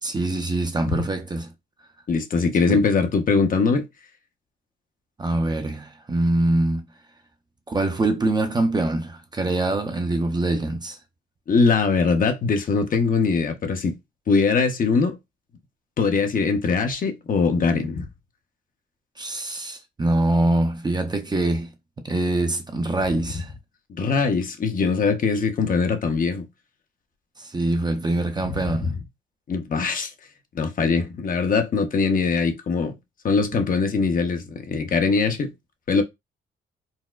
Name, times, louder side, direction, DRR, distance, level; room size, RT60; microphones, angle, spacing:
voice 1, 0.0-1.5 2.7-2.8 5.2-6.9 7.7-11.0 19.2-21.7 22.0-23.5 27.4-29.0, right 2 dB, 20° right, 0.6 m, -24 dB
voice 2, 2.1-3.9 11.5-13.9 14.3-15.1 16.0-18.1 23.9-26.5 28.7-29.0 29.5-30.1 30.5-32.9 33.2-35.5 35.9-36.0, left 4 dB, 45° left, 0.7 m, -22 dB
4.0 x 2.1 x 2.4 m
cardioid pair, 90°, 20 cm